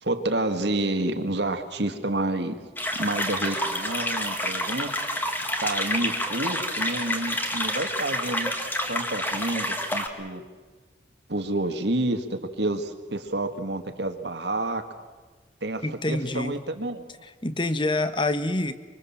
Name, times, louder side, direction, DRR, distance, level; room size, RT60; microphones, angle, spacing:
voice 1, 0.0-2.6 2.9-4.9 5.6-8.5 8.9-10.4 11.3-14.8 15.6-17.0, right 2 dB, 70° right, 7 dB, 1.9 m, -29 dB
sound 1, 2.8-10.1, left 1 dB, 10° left, 1.8 m, -28 dB
voice 2, 15.8-16.6 17.2-18.7, left 2 dB, 25° left, 11 dB, 1.1 m, -26 dB
25.0 x 24.0 x 7.3 m, 1.3 s
head